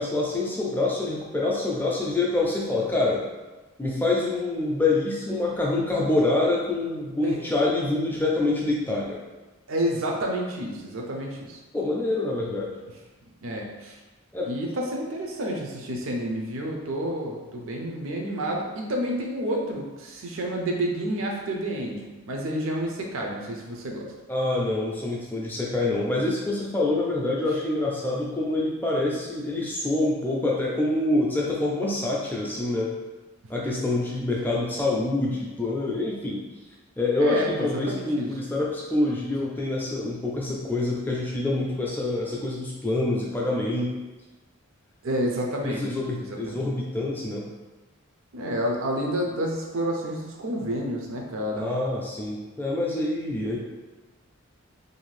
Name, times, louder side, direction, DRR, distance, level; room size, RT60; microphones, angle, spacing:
voice 1, 0.0-3.2 3.8-9.2 11.7-12.7 14.3-14.5 24.3-32.9 33.5-36.4 37.0-43.9 45.6-47.4 51.5-53.6, left 2 dB, 10° left, -4 dB, 0.4 m, -26 dB
voice 2, 9.7-11.6 13.4-14.0 14.4-24.1 37.2-38.3 45.0-45.9 46.2-46.6 48.3-51.7, equal, 70° right, 0 dB, 0.5 m, -29 dB
2.6 x 2.4 x 3.1 m, 1.2 s
head